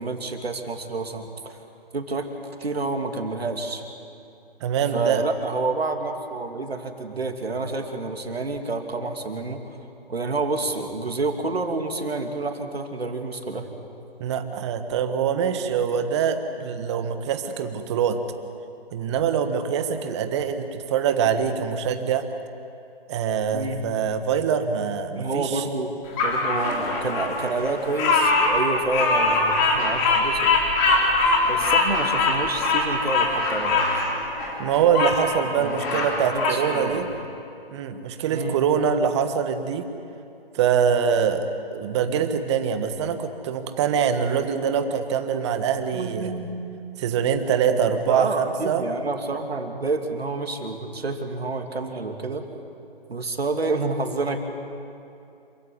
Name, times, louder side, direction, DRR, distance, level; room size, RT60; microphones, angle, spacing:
voice 1, 0.0-1.6 1.9-2.3 2.6-3.8 4.9-9.6 10.1-13.8 23.5-23.8 25.2-30.6 31.5-33.8 35.5-37.0 38.3-38.6 45.9-46.6 48.1-52.4 53.1-54.4, right 3 dB, 80° right, 4 dB, 2.8 m, -29 dB
voice 2, 4.6-5.2 14.2-18.2 18.9-22.3 23.1-25.6 34.6-37.1 37.7-39.9 40.5-41.4 41.7-46.3 47.0-48.8, right 7 dB, 30° right, 8 dB, 1.5 m, -24 dB
Bird vocalization bird call bird song, 26.2-35.2 35.6-36.6, left 3 dB, 20° left, 3.4 m, -22 dB
27.0 x 16.0 x 9.9 m, 2.6 s
figure-of-eight pair, 145°, 30 cm